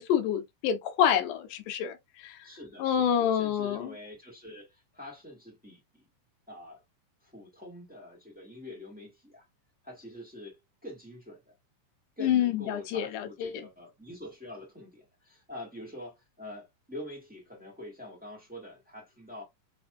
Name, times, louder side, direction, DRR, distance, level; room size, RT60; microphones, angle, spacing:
voice 1, 0.0-2.4 2.8-3.9 12.2-13.6, left 9 dB, 85° left, 2.3 m, -28 dB
voice 2, 2.4-6.0 6.5-6.8 7.2-9.5 9.8-11.5 12.2-19.4, left 1 dB, 5° right, 1.0 m, -45 dB
5.8 x 2.6 x 2.4 m
omnidirectional pair, 3.6 m